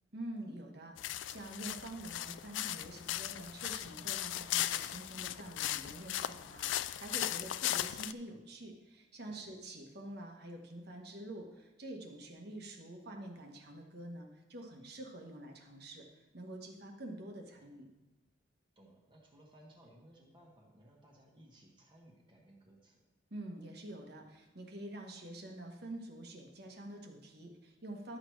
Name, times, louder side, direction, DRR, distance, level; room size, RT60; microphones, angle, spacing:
voice 1, 0.1-6.7 7.0-17.9 23.3-28.2, right 1 dB, 60° right, 2 dB, 1.3 m, -47 dB
sound 1, 1.0-8.1, left 13 dB, 75° left, 0.3 m, -37 dB
voice 2, 18.7-23.0, right 1 dB, 25° right, -2 dB, 1.4 m, -61 dB
11.5 x 6.4 x 4.7 m, 1.0 s
head